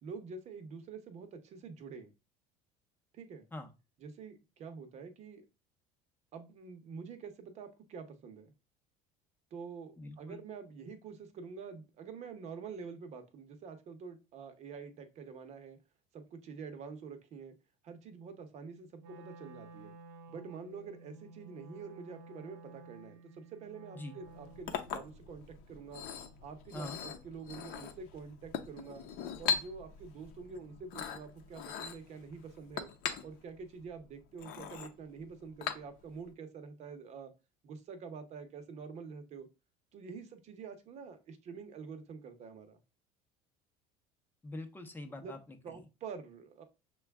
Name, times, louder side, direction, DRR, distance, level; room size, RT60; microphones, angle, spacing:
voice 1, 0.0-2.1 3.1-3.5 4.0-5.5 6.3-8.5 9.5-15.8 16.1-17.5 17.8-19.9 20.3-26.1 26.4-29.0 29.4-32.9 33.2-37.3 37.6-39.5 39.9-42.8 45.2-45.3 45.6-46.6, right 5 dB, 45° right, 8 dB, 0.8 m, -47 dB
voice 2, 10.0-10.4 23.9-24.2 26.7-27.0 44.4-45.8, left 1 dB, 10° left, 6 dB, 0.7 m, -44 dB
Wind instrument woodwind instrument, 19.0-25.0, right 3 dB, 80° right, 0.8 m, -53 dB
Chink clink, 24.2-36.3, left 7 dB, 65° left, 0.7 m, -41 dB
6.2 x 2.3 x 3.5 m, 0.29 s
cardioid pair, 135°, 16 cm